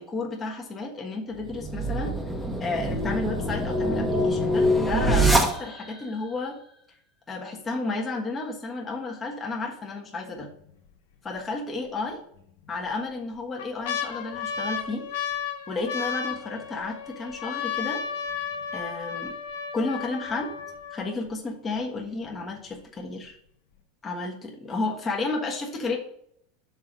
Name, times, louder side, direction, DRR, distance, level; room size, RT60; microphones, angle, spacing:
voice 1, 0.0-2.1 2.6-6.6 7.3-10.5 11.2-12.2 12.7-15.1 15.7-18.0 18.7-19.4 19.7-20.5 20.9-23.4 24.0-26.0, left 3 dB, 20° left, -1 dB, 1.3 m, -32 dB
sound 1, 1.4-6.0, right 1 dB, ahead, 1.1 m, -24 dB
sound 2, 10.4-10.9 11.3-11.4 12.4-12.9 13.3-21.3 22.0-22.1 22.3-22.8 23.2-23.3, left 7 dB, 75° left, 0.9 m, -33 dB
5.9 x 3.8 x 5.9 m, 0.71 s
supercardioid pair, 115°, 0 cm